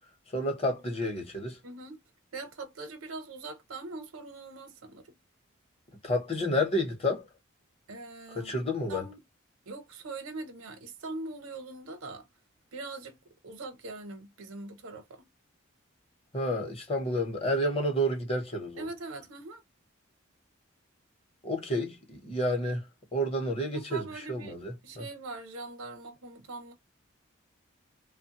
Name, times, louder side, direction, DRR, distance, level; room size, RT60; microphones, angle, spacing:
voice 1, 0.3-1.6 6.0-7.3 8.3-9.0 16.3-18.9 21.4-22.8 23.1-25.0, equal, 30° left, 0.8 m, -30 dB
voice 2, 1.6-2.0 2.3-5.1 7.9-8.5 8.9-9.2 9.7-12.3 12.7-13.2 13.4-15.3 18.8-19.6 23.7-26.7, right 3 dB, 90° right, 0.8 m, -42 dB
3.2 x 2.2 x 2.8 m
head